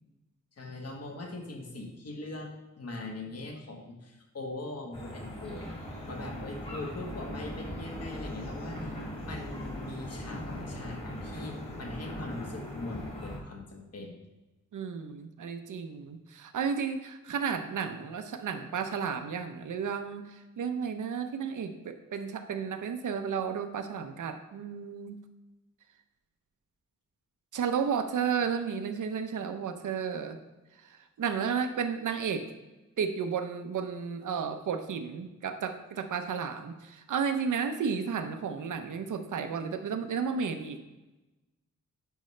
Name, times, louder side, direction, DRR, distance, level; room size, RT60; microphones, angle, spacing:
voice 1, 0.6-2.5 2.8-9.0 9.2-14.2, left 2 dB, 55° left, 2 dB, 1.3 m, -41 dB
sound 1, 4.9-13.4, equal, 20° left, 1.6 m, -39 dB
voice 2, 14.7-25.2 27.5-30.4 30.9-32.5 33.0-40.8, right 6 dB, 80° right, 7 dB, 0.7 m, -33 dB
10.0 x 5.4 x 3.2 m, 1.1 s
wide cardioid pair, 165°, 30 cm